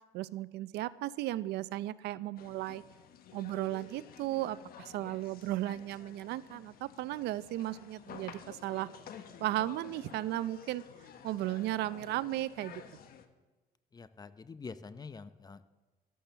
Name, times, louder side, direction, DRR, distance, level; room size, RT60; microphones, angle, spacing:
voice 1, 0.1-2.8 3.3-8.9 9.4-10.8 11.2-12.8, right 15 dB, 80° right, 17 dB, 0.5 m, -35 dB
sound 1, 2.4-13.3, left 8 dB, 60° left, 1.2 m, -51 dB
voice 2, 13.9-15.6, left 4 dB, 25° left, 13 dB, 0.7 m, -46 dB
12.5 x 12.0 x 6.8 m, 1.2 s
cardioid pair, 110°, 17 cm